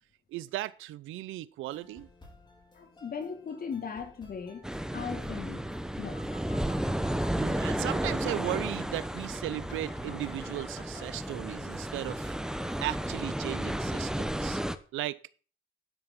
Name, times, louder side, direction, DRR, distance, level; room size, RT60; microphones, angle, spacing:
voice 1, 0.3-2.1 7.4-12.4 12.8-14.6 14.9-15.2, right 16 dB, 90° right, 0.6 m, -36 dB
sound 1, 1.7-13.1, left 1 dB, 25° left, 3.9 m, -56 dB
voice 2, 2.7-5.7 6.0-6.2, left 6 dB, 50° left, 2.4 m, -38 dB
sound 2, 4.6-14.8, right 1 dB, 5° right, 0.8 m, -33 dB
sound 3, 6.1-11.2, left 4 dB, 65° left, 2.6 m, -54 dB
11.0 x 10.5 x 3.7 m
cardioid pair, 90°, 20 cm